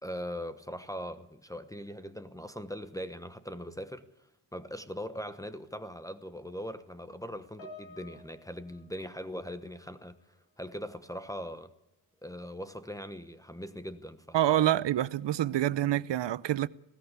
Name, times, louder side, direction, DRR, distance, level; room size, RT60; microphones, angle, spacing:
voice 1, 0.0-4.0 4.5-10.2 10.6-11.7 12.2-14.7, equal, 10° left, 1.1 m, -40 dB
Piano, 7.6-10.2 10.5-10.8 11.6-11.7, left 2 dB, 90° left, 5.3 m, -53 dB
voice 2, 14.3-16.7, right 12 dB, 75° right, 0.7 m, -27 dB
20.5 x 17.0 x 8.3 m
wide cardioid pair, 135°, 44 cm